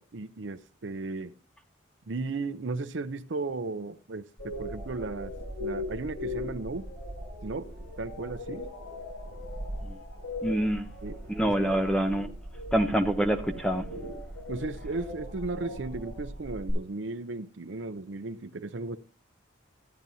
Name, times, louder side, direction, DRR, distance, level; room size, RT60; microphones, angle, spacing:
voice 1, 0.0-1.3 2.1-5.3 5.6-6.9 7.4-7.7 8.0-8.7 11.0-11.8 14.5-19.0, right 3 dB, 70° right, 0.6 m, -35 dB
sound 1, 4.4-16.7, left 1 dB, 80° left, 6.7 m, -39 dB
voice 2, 10.4-10.9 11.3-12.3 12.7-13.9, right 1 dB, 5° left, 0.7 m, -26 dB
15.0 x 10.5 x 2.7 m
head